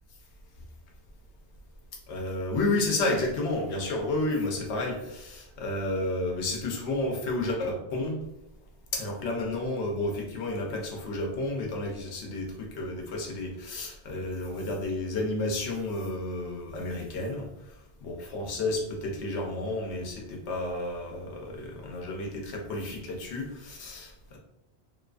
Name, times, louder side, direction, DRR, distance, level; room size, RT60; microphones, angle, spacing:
voice 1, 2.1-8.2 8.9-24.4, left 2 dB, 90° left, 1 dB, 0.9 m, -31 dB
2.6 x 2.4 x 2.3 m, 0.88 s
omnidirectional pair, 1.1 m